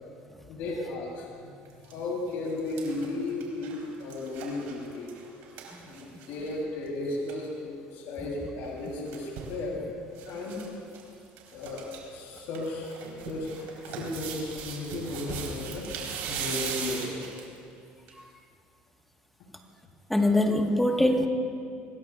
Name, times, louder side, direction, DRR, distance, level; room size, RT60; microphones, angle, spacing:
voice 1, 0.5-5.1 5.8-9.7 10.2-10.6 11.5-11.8 12.1-15.9 16.3-17.3, left 2 dB, 70° left, -3 dB, 3.5 m, -35 dB
sound 1, 1.7-1.9 2.3-6.5 6.9-7.0 7.1-7.4 8.6-9.6 10.2-10.7 10.9-11.0 11.4-12.0 12.4-17.6 18.1-18.2, right 6 dB, 75° right, 4.2 m, -38 dB
voice 2, 20.1-21.3, left 1 dB, 5° left, 3 dB, 1.5 m, -23 dB
25.5 x 19.5 x 2.5 m, 2.4 s
cardioid pair, 120°, 4 cm